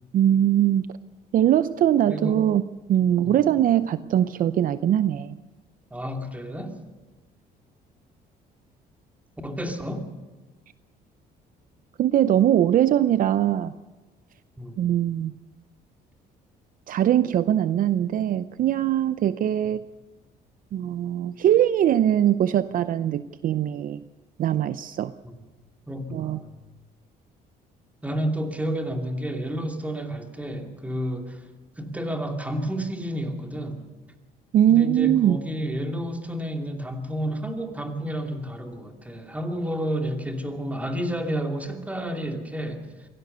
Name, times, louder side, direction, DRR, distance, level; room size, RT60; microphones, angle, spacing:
voice 1, 0.1-0.9 1.3-2.6 2.9-5.4 12.0-13.7 14.8-15.4 16.9-19.8 20.7-24.0 24.4-25.1 26.1-26.4 34.5-35.4, right 11 dB, 55° right, 13 dB, 0.6 m, -21 dB
voice 2, 2.1-2.4 3.2-3.5 5.9-6.8 9.4-10.1 14.6-14.8 25.2-25.4 25.9-26.5 28.0-31.4 31.8-33.9 34.7-42.9, equal, 10° right, 3 dB, 2.7 m, -30 dB
23.5 x 17.0 x 6.8 m, 1.2 s
cardioid pair, 110°, 17 cm